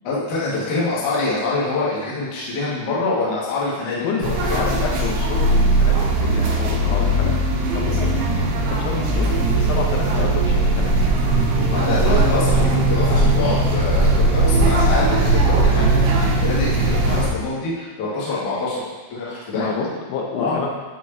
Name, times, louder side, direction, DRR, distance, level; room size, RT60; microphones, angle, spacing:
voice 1, 0.0-4.7 6.8-6.9 7.8-8.0 11.7-18.8 19.1-19.7 20.4-20.6, left 3 dB, 55° left, -8 dB, 2.4 m, -25 dB
voice 2, 4.0-7.3 7.8-8.1 8.8-10.9 19.5-20.7, left 5 dB, 90° left, 0 dB, 3.7 m, -28 dB
sound 1, 4.2-17.3, right 2 dB, 90° right, 3.8 m, -18 dB
11.0 x 4.7 x 2.9 m, 1.3 s
omnidirectional pair, 6.0 m